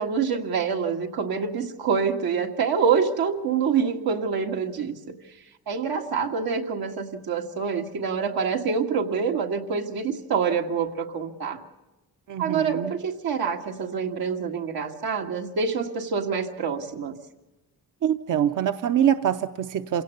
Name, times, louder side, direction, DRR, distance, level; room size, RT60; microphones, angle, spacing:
voice 1, 0.0-5.2 5.7-11.6 12.4-17.2, right 6 dB, 90° right, 2 dB, 1.8 m, -26 dB
voice 2, 12.3-13.0 18.0-20.0, right 9 dB, 60° right, 9 dB, 0.7 m, -24 dB
27.0 x 17.5 x 6.8 m, 1.0 s
cardioid pair, 95°, 36 cm